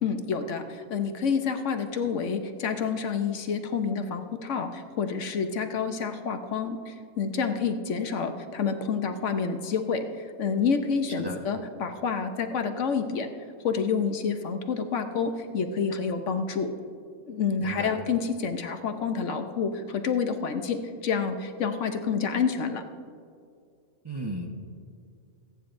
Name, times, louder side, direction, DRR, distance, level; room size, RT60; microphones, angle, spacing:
voice 1, 0.0-13.3 13.6-16.7 17.3-22.8, left 6 dB, 65° left, 6 dB, 1.1 m, -28 dB
voice 2, 17.6-17.9 24.0-24.5, equal, 20° right, 1 dB, 0.8 m, -34 dB
27.0 x 9.4 x 2.6 m, 2.4 s
omnidirectional pair, 1.4 m